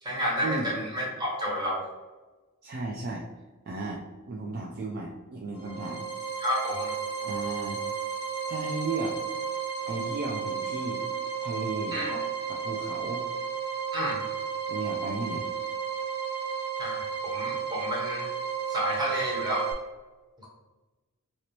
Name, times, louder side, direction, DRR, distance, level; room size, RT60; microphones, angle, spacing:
voice 1, 0.0-1.8 6.4-6.9 11.9-12.2 13.9-14.2 16.8-18.3 18.7-19.7, equal, 20° right, -5 dB, 1.0 m, -30 dB
voice 2, 2.6-3.3 3.7-6.4 7.2-7.8 8.5-9.2 9.9-11.0 11.4-12.0 12.5-13.2 14.7-15.5, right 2 dB, 45° right, -1 dB, 0.4 m, -35 dB
sound 1, 5.5-19.7, right 7 dB, 45° left, 0.6 m, -33 dB
2.9 x 2.9 x 2.9 m, 1.2 s
head